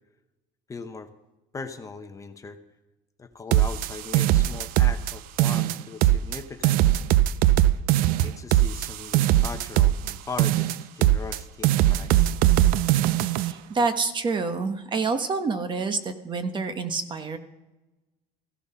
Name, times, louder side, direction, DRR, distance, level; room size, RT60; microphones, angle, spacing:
voice 1, 0.7-1.1 1.5-2.6 3.2-6.8 8.2-12.4, left 4 dB, 20° left, 7 dB, 0.9 m, -39 dB
sound 1, 3.5-5.1 5.4-6.4 6.6-10.1 10.4-11.4 11.6-13.5, right 14 dB, 75° right, 0.5 m, -21 dB
voice 2, 13.3-17.4, right 4 dB, 30° right, 9 dB, 1.1 m, -27 dB
15.5 x 12.0 x 5.6 m, 1.0 s
cardioid pair, 125°, 15 cm